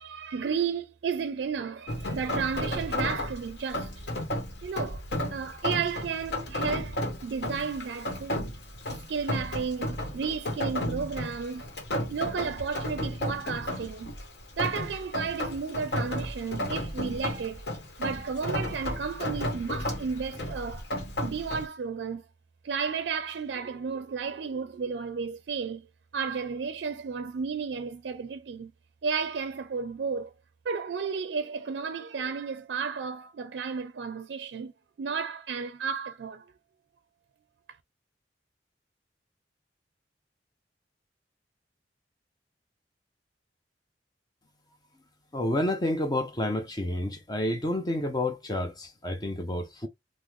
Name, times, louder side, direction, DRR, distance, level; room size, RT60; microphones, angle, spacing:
voice 1, 0.0-4.1 4.6-5.0 5.3-8.5 8.9-11.6 12.1-14.1 14.6-17.7 18.0-20.9 21.2-22.2 22.6-25.9 26.1-28.7 29.0-30.3 30.6-34.7 35.0-36.5, right 5 dB, 70° right, 0.4 m, -33 dB
Rain, 1.9-21.7, left 1 dB, 65° left, 1.0 m, -33 dB
voice 2, 45.3-49.9, left 1 dB, 20° left, 0.5 m, -29 dB
3.5 x 2.0 x 3.1 m
head